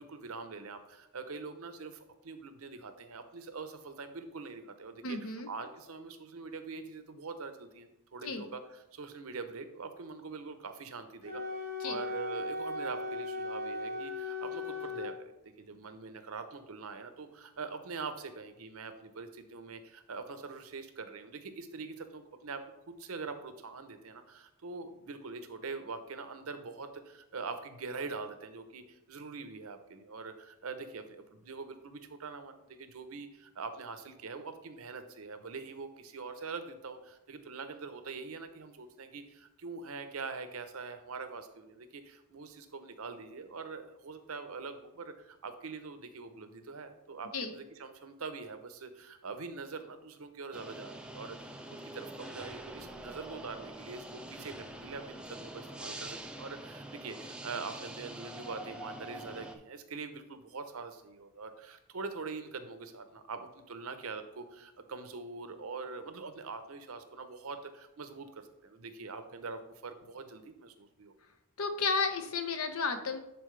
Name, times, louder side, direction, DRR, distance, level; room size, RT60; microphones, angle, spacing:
voice 1, 0.0-11.4 11.8-15.3 15.6-22.6 22.9-51.5 51.8-71.1, right 4 dB, 75° right, 9 dB, 0.7 m, -43 dB
voice 2, 5.0-5.5 8.2-8.4 11.8-12.0 47.3-47.5 71.6-73.2, left 4 dB, 75° left, 7 dB, 0.8 m, -32 dB
Wind instrument woodwind instrument, 11.2-15.1, left 2 dB, 50° left, 2.3 m, -37 dB
sound 1, 50.5-59.5, right 1 dB, 5° right, 0.5 m, -45 dB
10.5 x 4.2 x 3.2 m, 0.90 s
head